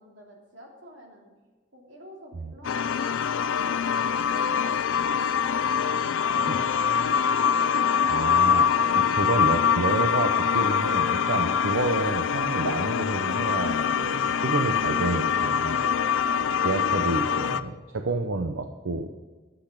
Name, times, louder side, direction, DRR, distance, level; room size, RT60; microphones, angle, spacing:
voice 1, 0.0-1.3 1.7-4.7, equal, 70° right, -1 dB, 3.0 m, -50 dB
sound 1, 2.6-17.6, left 7 dB, 80° left, 0.4 m, -24 dB
voice 2, 8.0-15.9 16.6-19.1, right 3 dB, 90° right, 6 dB, 0.7 m, -29 dB
12.0 x 8.2 x 5.9 m, 1.3 s
head